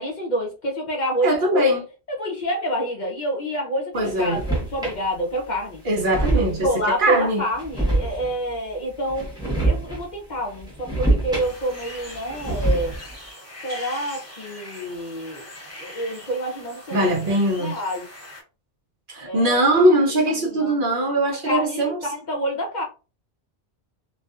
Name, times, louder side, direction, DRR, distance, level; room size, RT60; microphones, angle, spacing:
voice 1, 0.0-1.7 2.1-5.8 6.3-9.3 9.6-13.0 13.6-15.5 15.8-17.2 17.6-18.1 19.2-19.8 20.1-21.0 21.4-22.8, equal, 50° left, 0.6 m, -28 dB
voice 2, 1.2-1.8 3.9-4.4 5.8-6.7 7.0-7.4 16.9-17.8 19.1-22.0, right 1 dB, 60° right, 0.6 m, -21 dB
sound 1, 4.1-5.0 5.5-5.6 5.9-6.8 7.5-8.5 9.1-10.1 10.4-11.8 12.1-13.2, right 2 dB, 5° right, 0.9 m, -25 dB
sound 2, 11.4-18.4, left 1 dB, 15° left, 1.0 m, -41 dB
2.5 x 2.3 x 2.3 m
omnidirectional pair, 1.2 m